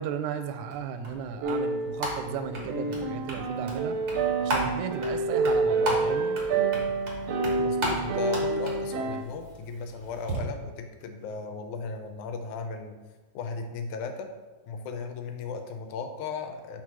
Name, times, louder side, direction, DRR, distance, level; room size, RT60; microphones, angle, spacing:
voice 1, 0.0-4.0 4.4-6.4, right 7 dB, 90° right, 8 dB, 2.0 m, -35 dB
sound 1, 0.7-10.4, right 1 dB, 50° right, 0.8 m, -36 dB
sound 2, 1.4-9.2, right 3 dB, 75° right, 1.5 m, -28 dB
voice 2, 7.6-13.0 13.3-14.3 14.6-16.8, left 5 dB, 85° left, 6 dB, 2.1 m, -36 dB
4.9 x 4.4 x 6.0 m, 1.2 s
omnidirectional pair, 3.3 m